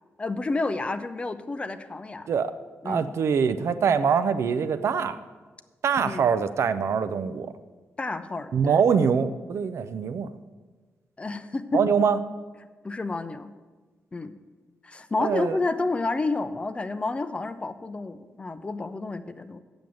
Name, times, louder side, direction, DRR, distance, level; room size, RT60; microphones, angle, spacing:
voice 1, 0.2-2.3 2.8-3.1 6.0-6.3 8.0-8.8 11.2-11.8 12.8-13.5 14.1-14.3 14.8-19.6, left 3 dB, 25° left, 11 dB, 0.4 m, -30 dB
voice 2, 2.8-5.2 5.8-7.5 8.5-10.3 11.7-12.2 15.2-15.6, right 6 dB, 65° right, 12 dB, 0.5 m, -24 dB
7.7 x 7.1 x 7.5 m, 1.3 s
wide cardioid pair, 150°, 5 cm